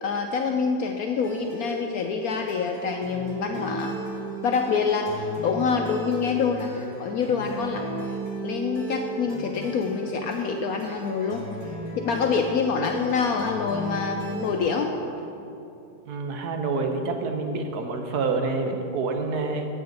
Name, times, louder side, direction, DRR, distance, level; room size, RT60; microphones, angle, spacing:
voice 1, 0.0-4.0 4.4-8.2 8.4-14.9, left 5 dB, 70° left, 3 dB, 0.9 m, -26 dB
sound 1, 1.2-14.6, right 1 dB, 20° right, 1.5 m, -36 dB
voice 2, 16.1-19.7, right 3 dB, 65° right, 5 dB, 1.2 m, -27 dB
7.9 x 6.6 x 7.9 m, 2.7 s
omnidirectional pair, 2.0 m